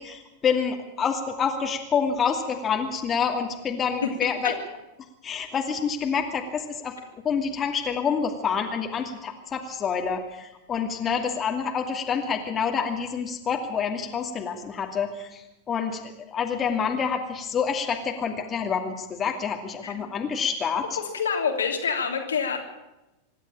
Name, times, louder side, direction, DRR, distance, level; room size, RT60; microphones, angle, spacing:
voice 1, 0.0-4.5 5.2-7.0 7.2-20.9, left 6 dB, 25° left, 3 dB, 2.5 m, -27 dB
voice 2, 20.9-22.6, left 6 dB, 70° left, 2 dB, 2.9 m, -27 dB
25.5 x 11.5 x 8.8 m, 0.97 s
figure-of-eight pair, 90°, 0 cm